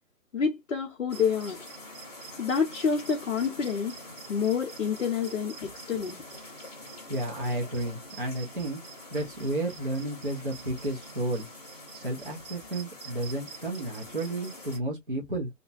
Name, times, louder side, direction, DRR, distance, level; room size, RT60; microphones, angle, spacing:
voice 1, 0.3-1.6 2.4-4.0 4.3-6.2, left 6 dB, 50° left, 0.6 m, -28 dB
sound 1, 1.1-14.8, equal, 25° left, 0.8 m, -45 dB
voice 2, 7.1-8.8 9.1-11.5 11.9-15.5, right 1 dB, 35° right, 0.4 m, -32 dB
2.4 x 2.1 x 2.4 m
hypercardioid pair, 160°, 48 cm